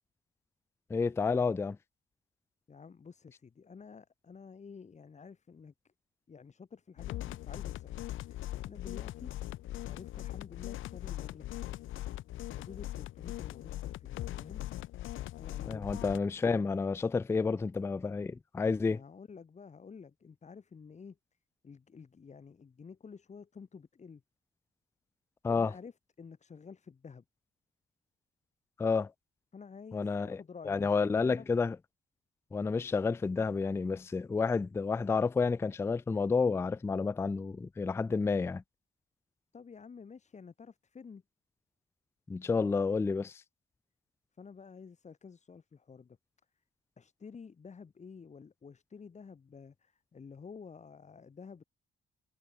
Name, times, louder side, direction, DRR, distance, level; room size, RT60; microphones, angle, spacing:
voice 1, 0.9-1.8 15.7-19.0 25.4-25.7 28.8-29.1 29.9-30.4 30.7-31.8 32.5-38.6 42.3-43.4, left 4 dB, 15° left, 0.3 m, -30 dB
voice 2, 2.7-5.9 6.3-7.9 8.3-9.3 9.9-12.0 12.5-14.7 15.4-15.9 18.9-21.2 21.6-24.2 25.5-27.2 29.5-31.5 39.5-41.2 44.4-46.2 47.0-51.6, left 5 dB, 35° left, 2.1 m, -51 dB
sound 1, 7.0-16.2, left 15 dB, 80° left, 1.2 m, -40 dB
cardioid pair, 90°, 20 cm